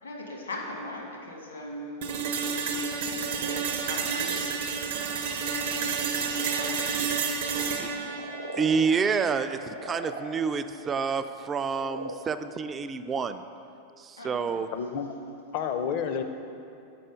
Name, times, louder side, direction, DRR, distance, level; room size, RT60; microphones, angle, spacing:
voice 1, 0.0-2.1 3.4-4.6 5.5-7.1 7.4-8.1 14.1-14.6, left 1 dB, 75° left, 0 dB, 1.3 m, -40 dB
sound 1, 2.0-10.0, right 6 dB, 55° right, 0.6 m, -30 dB
sound 2, 5.2-5.5 7.7-9.0 9.4-11.1 11.6-12.1, right 1 dB, 90° right, 0.7 m, -39 dB
voice 2, 8.6-13.4 14.0-14.7, right 5 dB, 20° right, 10 dB, 0.3 m, -28 dB
voice 3, 14.7-15.1 15.5-16.2, left 7 dB, 45° left, 8 dB, 0.5 m, -29 dB
6.9 x 5.4 x 5.0 m, 2.6 s
figure-of-eight pair, 90°, 0 cm